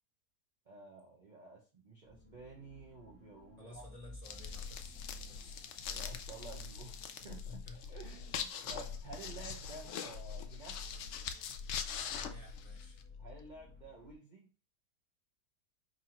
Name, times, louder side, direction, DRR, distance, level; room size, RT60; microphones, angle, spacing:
voice 1, 0.7-3.8 5.9-10.9 13.2-14.5, right 3 dB, 35° right, -3 dB, 0.8 m, -52 dB
sound 1, 2.0-14.1, left 3 dB, 10° left, 0.9 m, -59 dB
voice 2, 3.6-5.5 7.5-7.8 12.2-13.0, left 2 dB, 25° left, -3 dB, 1.3 m, -55 dB
sound 2, 4.2-13.0, left 7 dB, 85° left, 0.6 m, -44 dB
sound 3, 4.3-12.8, left 4 dB, 65° left, 1.4 m, -47 dB
5.2 x 2.9 x 2.9 m, 0.33 s
omnidirectional pair, 1.8 m